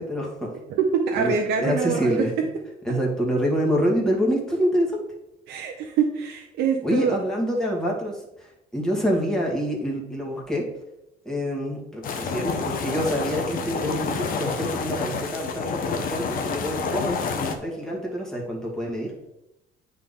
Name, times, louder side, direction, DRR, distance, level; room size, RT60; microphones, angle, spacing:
voice 1, 0.0-0.5 1.2-2.3 2.8-5.0 6.8-10.7 11.2-19.2, equal, 5° left, -3 dB, 2.0 m, -26 dB
voice 2, 0.7-2.2 5.5-7.2, right 6 dB, 80° right, 1 dB, 0.9 m, -24 dB
sound 1, 12.0-17.6, left 5 dB, 55° left, 1.0 m, -29 dB
9.1 x 4.1 x 3.7 m, 0.89 s
cardioid pair, 110°, 17 cm